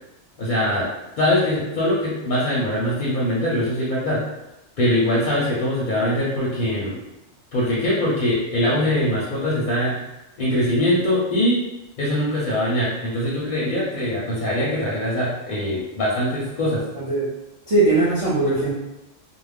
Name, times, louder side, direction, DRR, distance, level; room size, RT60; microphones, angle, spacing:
voice 1, 0.4-0.9 1.2-4.2 4.8-7.0 7.5-10.0 10.4-11.6 12.0-16.8, left 1 dB, 50° left, -6 dB, 0.7 m, -22 dB
voice 2, 17.0-17.3 17.7-18.7, right 2 dB, 40° right, -10 dB, 0.6 m, -20 dB
2.4 x 2.0 x 3.3 m, 0.96 s
omnidirectional pair, 1.2 m